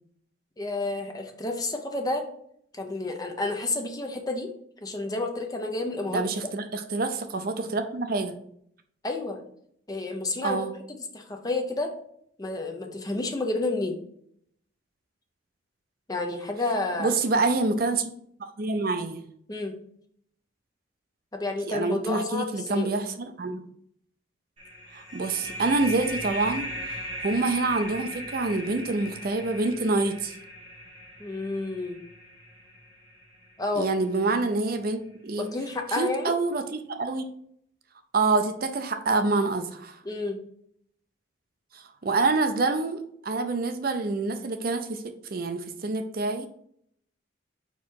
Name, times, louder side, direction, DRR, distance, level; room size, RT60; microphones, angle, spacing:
voice 1, 0.6-2.2 2.7-4.5 4.8-6.2 9.0-9.4 9.9-10.6 11.1-11.9 12.4-14.0 16.1-17.1 19.5-19.8 21.3-22.9 31.2-32.0 33.6-33.9 35.4-36.3 40.0-40.4, left 2 dB, 20° left, 3 dB, 0.7 m, -30 dB
voice 2, 6.1-8.3 10.4-10.7 17.0-18.1 18.4-19.3 21.7-23.6 24.9-30.4 33.8-35.5 36.0-37.3 38.1-40.0 41.7-45.0 45.3-46.5, right 3 dB, 45° right, 7 dB, 0.5 m, -27 dB
sound 1, 24.6-33.9, equal, 30° right, 2.5 m, -38 dB
4.7 x 4.6 x 4.6 m, 0.68 s
head